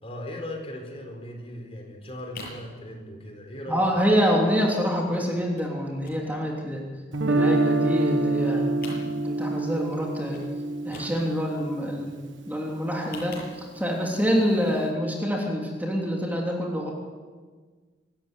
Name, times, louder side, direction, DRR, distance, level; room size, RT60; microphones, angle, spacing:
voice 1, 0.0-4.1, left 1 dB, 30° left, 3 dB, 4.4 m, -38 dB
sound 1, 1.9-2.7 3.0-3.4 3.7-3.8 4.0-4.3 4.6-5.1 5.5-5.7 6.0-7.3 7.6-8.4 8.7-9.6 9.9-10.0 10.3-10.5 10.8-11.5 12.8-13.9 14.5-14.9 15.2-15.3, left 2 dB, 55° left, 8.0 m, -44 dB
voice 2, 3.7-6.8 7.2-8.6 8.9-10.4 10.8-16.9, equal, 10° right, -1 dB, 3.2 m, -26 dB
Guitar, 7.1-13.1, right 2 dB, 85° right, 1.5 m, -27 dB
26.5 x 14.0 x 9.4 m, 1.5 s
head